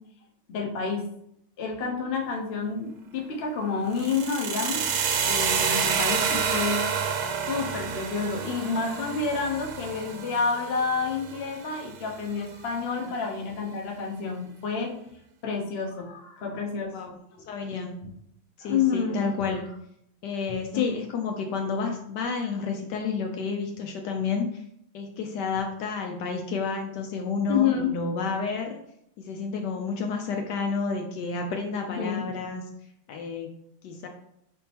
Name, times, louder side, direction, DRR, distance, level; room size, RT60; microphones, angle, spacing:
voice 1, 0.5-1.0 1.6-4.8 5.3-6.8 7.5-14.9 15.4-16.9 17.4-17.5 18.6-19.2 20.7-20.8 27.5-27.9 32.0-32.3, left 5 dB, 50° left, -1 dB, 0.8 m, -29 dB
sound 1, 3.9-12.0, right 6 dB, 70° right, 0.9 m, -29 dB
voice 2, 17.5-18.0 18.6-19.7 20.2-24.6 24.9-28.8 29.2-32.6 33.1-33.5 33.8-34.1, left 5 dB, 70° left, 3 dB, 1.1 m, -30 dB
5.2 x 3.5 x 2.9 m, 0.73 s
omnidirectional pair, 2.0 m